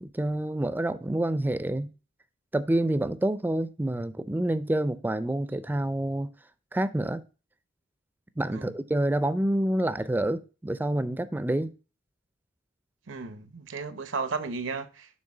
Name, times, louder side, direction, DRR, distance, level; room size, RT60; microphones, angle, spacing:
voice 1, 0.0-1.9 2.5-6.3 6.7-7.2 8.4-11.7, right 1 dB, 10° right, 0.3 m, -27 dB
voice 2, 13.1-15.2, right 4 dB, 80° right, 0.7 m, -34 dB
6.5 x 3.7 x 4.7 m
head